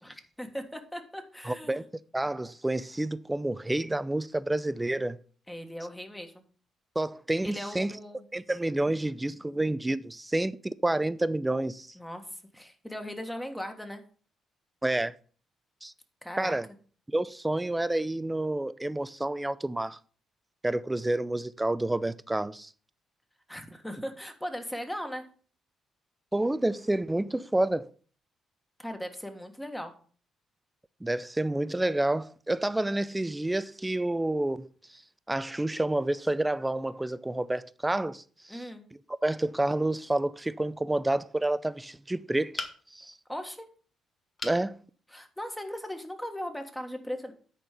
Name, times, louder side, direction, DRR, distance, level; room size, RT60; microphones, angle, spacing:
voice 1, 0.0-1.8 5.5-6.4 7.4-8.2 12.0-12.2 12.5-14.0 16.2-16.6 23.5-25.3 28.8-29.9 38.5-38.8 43.3-43.6 45.1-47.3, equal, 5° left, 1.5 m, -38 dB
voice 2, 1.4-1.8 2.1-5.2 7.0-7.9 8.3-11.9 14.8-15.1 15.8-15.9 16.4-16.7 17.1-20.0 20.6-22.7 26.3-27.9 31.0-35.0 35.3-38.6 39.2-42.6 42.9-43.1 44.4-44.8, right 1 dB, 10° right, 0.4 m, -29 dB
sound 1, 42.6-43.1 44.4-44.7 45.2-45.3 45.7-45.8, left 3 dB, 40° left, 1.2 m, -37 dB
10.0 x 4.3 x 5.1 m
cardioid pair, 90°, 0 cm